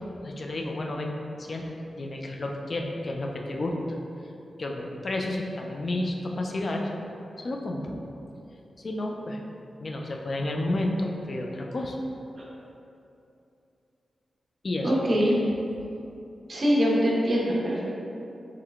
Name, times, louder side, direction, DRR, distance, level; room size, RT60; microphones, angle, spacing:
voice 1, 0.2-3.8 4.6-6.9 7.4-8.0 8.8-9.4 9.8-12.0 14.6-14.9, left 1 dB, 50° left, 1 dB, 0.4 m, -31 dB
voice 2, 14.8-15.4 16.5-17.8, equal, 45° right, -5 dB, 1.0 m, -23 dB
3.6 x 3.3 x 3.5 m, 2.7 s
cardioid pair, 75°, 0 cm